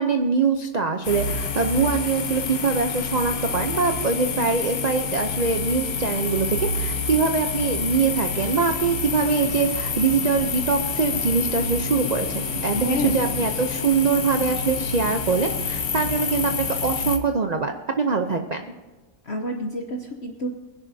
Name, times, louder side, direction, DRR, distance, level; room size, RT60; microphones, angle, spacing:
voice 1, 0.0-18.7, right 5 dB, 50° right, 5 dB, 0.4 m, -23 dB
sound 1, 1.0-17.2, left 5 dB, 70° left, 1.5 m, -28 dB
voice 2, 12.7-13.5 19.2-20.5, equal, 50° left, 2 dB, 1.0 m, -28 dB
21.0 x 11.0 x 2.7 m, 1.2 s
omnidirectional pair, 1.7 m